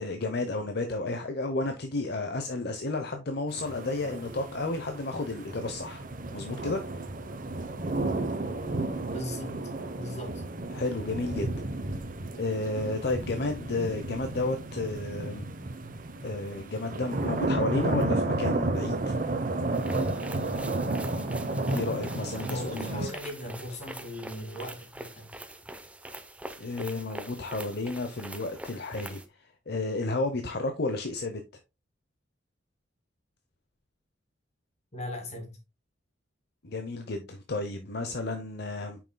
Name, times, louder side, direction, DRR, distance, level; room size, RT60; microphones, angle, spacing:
voice 1, 0.0-6.1 6.3-7.0 10.7-11.5 12.3-15.4 16.2-19.2 21.7-23.1 26.6-31.4 36.6-39.0, left 2 dB, 60° left, 0.8 m, -32 dB
sound 1, 3.5-23.1, right 2 dB, 45° right, 0.9 m, -32 dB
voice 2, 9.1-9.6 9.9-10.4 22.4-25.3 34.9-35.6, left 1 dB, 35° left, 2.2 m, -38 dB
sound 2, 19.7-29.3, right 1 dB, 5° right, 0.7 m, -44 dB
9.1 x 6.0 x 2.2 m
head